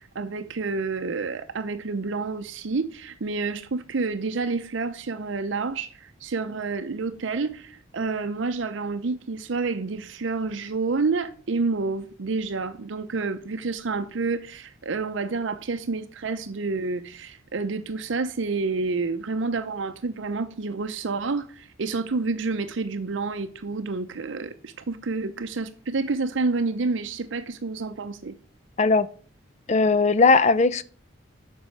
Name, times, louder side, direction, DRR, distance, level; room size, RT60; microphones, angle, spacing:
voice 1, 0.0-28.4, right 4 dB, 65° right, 0.6 m, -29 dB
voice 2, 29.7-30.8, left 4 dB, 35° left, 0.5 m, -18 dB
8.0 x 5.4 x 6.5 m
head